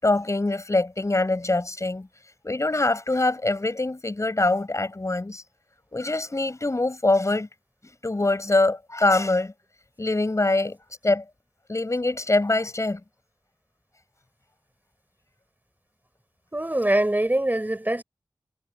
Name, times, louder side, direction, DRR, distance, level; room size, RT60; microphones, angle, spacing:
voice 1, 0.0-2.1 2.4-5.4 5.9-7.5 8.0-9.5 10.0-10.8 11.0-11.2 11.7-13.0, left 2 dB, 40° left, 7.1 m, -24 dB
voice 2, 16.5-18.0, right 1 dB, 20° right, 7.3 m, -23 dB
wide cardioid pair, 60°, 8 cm